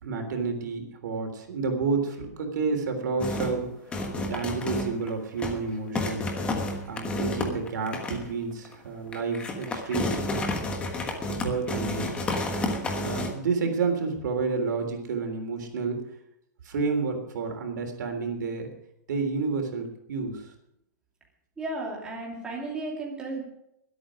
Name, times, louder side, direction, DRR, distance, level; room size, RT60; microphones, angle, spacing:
voice 1, 0.0-3.7 4.3-6.3 6.9-10.3 11.3-12.1 13.0-16.0 16.7-18.7 19.1-20.5, right 4 dB, 80° right, 4 dB, 3.5 m, -30 dB
sound 1, 3.2-3.6 3.9-5.1 5.4-5.6 5.9-8.3 8.6-8.7 9.1-13.3, left 2 dB, 10° left, 1.3 m, -30 dB
voice 2, 21.6-23.4, right 2 dB, 10° right, -3 dB, 2.7 m, -34 dB
22.0 x 8.6 x 5.1 m, 0.81 s
supercardioid pair, 165°, 10 cm